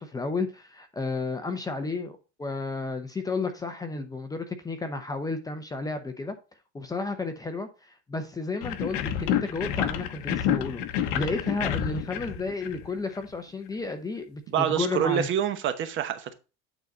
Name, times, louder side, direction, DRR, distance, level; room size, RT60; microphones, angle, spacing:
voice 1, 0.0-6.4 6.7-15.3, left 3 dB, 10° left, 0.7 m, -32 dB
sound 1, 8.6-13.2, left 9 dB, 65° left, 1.0 m, -29 dB
voice 2, 14.5-16.3, right 9 dB, 35° right, 0.9 m, -26 dB
9.0 x 4.1 x 3.9 m
cardioid pair, 155°, 32 cm